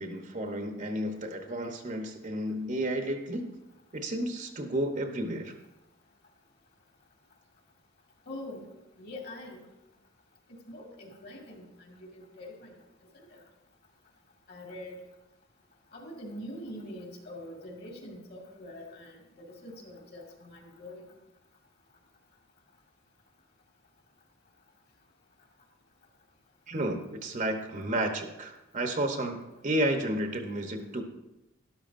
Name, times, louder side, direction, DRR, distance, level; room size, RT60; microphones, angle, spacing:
voice 1, 0.0-3.5 3.9-5.5 26.7-31.0, right 1 dB, 40° right, 4 dB, 1.0 m, -32 dB
voice 2, 8.3-8.7 9.0-9.7 10.7-12.7 13.1-13.4 14.5-15.0 15.9-21.0, left 1 dB, 50° left, 0 dB, 2.2 m, -44 dB
12.5 x 12.0 x 2.6 m, 0.93 s
head